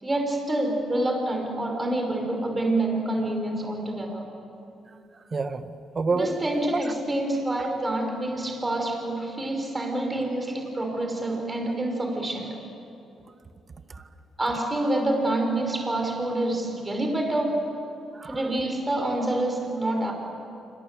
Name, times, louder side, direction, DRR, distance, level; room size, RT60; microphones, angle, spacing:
voice 1, 0.0-4.2 6.2-12.6 14.4-17.7 18.2-20.1, right 1 dB, 20° right, 2 dB, 5.5 m, -27 dB
voice 2, 4.9-6.3 6.7-6.8 13.9-14.1 18.1-18.5, right 4 dB, 35° right, 9 dB, 1.7 m, -29 dB
28.0 x 25.0 x 7.7 m, 2.8 s
cardioid pair, 90°, 0 cm